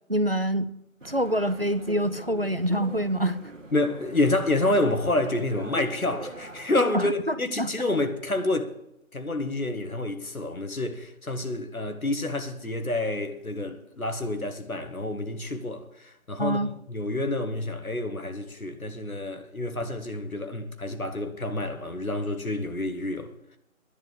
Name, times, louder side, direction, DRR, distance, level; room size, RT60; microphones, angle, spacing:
voice 1, 0.1-0.7 1.0-3.4 6.9-7.7 16.4-16.7, equal, 45° right, 0.5 m, -26 dB
sound 1, 1.0-6.7, right 2 dB, 60° right, 1.5 m, -41 dB
voice 2, 3.7-8.7 9.1-15.8 16.3-16.6 16.9-23.3, left 2 dB, 80° left, 1.9 m, -28 dB
10.5 x 9.0 x 8.0 m
figure-of-eight pair, 165°, 42 cm